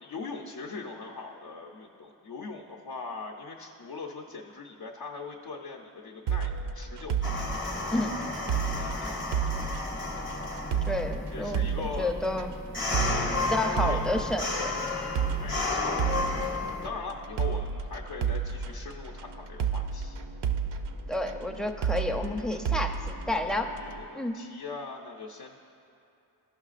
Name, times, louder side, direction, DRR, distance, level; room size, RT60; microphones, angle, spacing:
voice 1, 0.0-7.2 8.8-9.2 11.3-12.1 13.0-13.5 13.7-14.0 15.4-16.0 16.8-20.2 23.7-25.6, left 4 dB, 65° left, 0 dB, 0.6 m, -40 dB
sound 1, 6.3-24.0, right 7 dB, 80° right, 0.5 m, -32 dB
sound 2, 7.2-16.9, left 3 dB, 30° left, 0.8 m, -32 dB
voice 2, 10.9-11.7 12.0-12.5 13.4-14.7 21.1-23.7 24.2-24.4, left 1 dB, ahead, 3 dB, 0.4 m, -30 dB
14.5 x 5.7 x 2.4 m, 2.7 s
wide cardioid pair, 75°, 41 cm